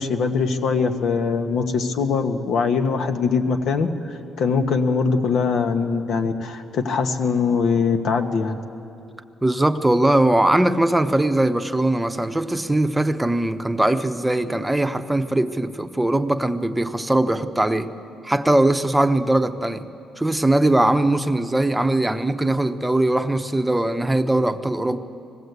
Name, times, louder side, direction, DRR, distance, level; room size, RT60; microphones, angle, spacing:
voice 1, 0.0-8.6, left 5 dB, 75° left, 7 dB, 1.3 m, -22 dB
voice 2, 9.4-17.9 18.2-19.8 20.2-25.0, right 1 dB, 10° right, 9 dB, 0.8 m, -20 dB
20.0 x 16.0 x 8.1 m, 2.6 s
cardioid pair, 90°, 0 cm